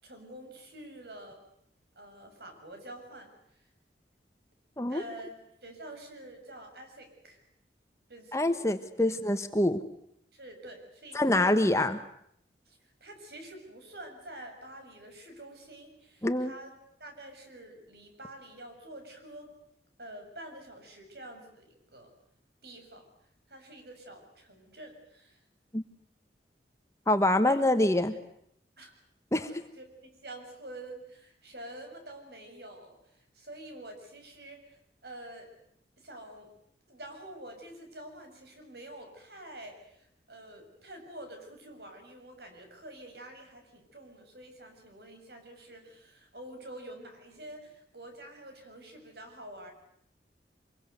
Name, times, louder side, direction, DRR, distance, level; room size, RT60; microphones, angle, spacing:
voice 1, 0.0-1.4 2.0-3.7 4.9-5.3 5.6-7.4 8.1-8.6 9.0-9.1 10.3-11.7 12.7-16.7 17.0-19.6 20.0-22.1 22.6-23.1 23.5-25.4 27.5-27.6 28.8-28.9 29.3-35.5 36.0-36.5 36.9-49.7, right 1 dB, 65° right, 5 dB, 7.0 m, -47 dB
voice 2, 8.3-9.8 11.1-12.0 16.2-16.5 25.7-25.8 27.1-28.2 29.3-29.5, left 1 dB, 15° left, 9 dB, 1.2 m, -25 dB
25.5 x 22.5 x 8.1 m, 0.71 s
head